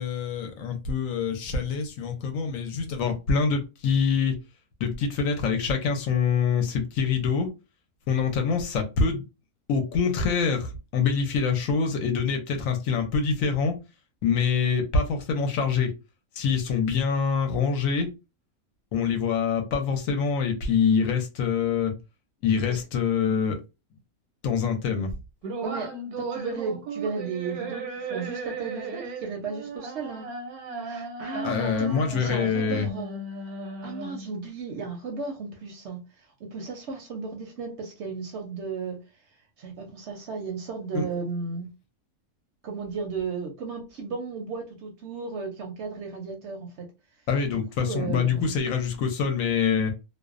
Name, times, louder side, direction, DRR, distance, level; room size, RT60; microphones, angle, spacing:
voice 1, 0.0-4.4 4.8-7.5 8.1-9.2 9.7-13.7 14.2-15.9 16.4-18.1 18.9-21.9 22.4-23.6 24.4-25.1 31.4-32.9 40.9-41.0 47.3-49.9, left 6 dB, 75° left, 1.0 m, -25 dB
sound 1, 25.4-34.4, right 3 dB, 85° right, 1.1 m, -36 dB
voice 2, 25.6-30.3 30.8-33.2 33.8-36.0 36.4-39.0 39.6-41.7 42.6-46.9 47.8-48.5, right 4 dB, 65° right, 0.7 m, -34 dB
2.5 x 2.0 x 2.4 m
omnidirectional pair, 1.5 m